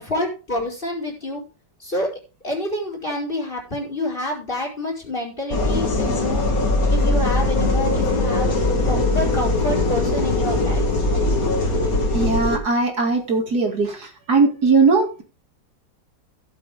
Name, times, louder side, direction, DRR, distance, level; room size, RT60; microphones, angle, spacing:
voice 1, 0.0-1.4 1.8-2.1 2.4-6.4 6.9-8.6 8.8-10.9, left 1 dB, 30° left, -1 dB, 4.8 m, -28 dB
sound 1, 5.5-12.6, left 2 dB, 55° left, 2.4 m, -20 dB
voice 2, 12.1-15.2, right 4 dB, 60° right, 1 dB, 3.0 m, -19 dB
16.5 x 7.8 x 3.5 m, 0.33 s
omnidirectional pair, 1.9 m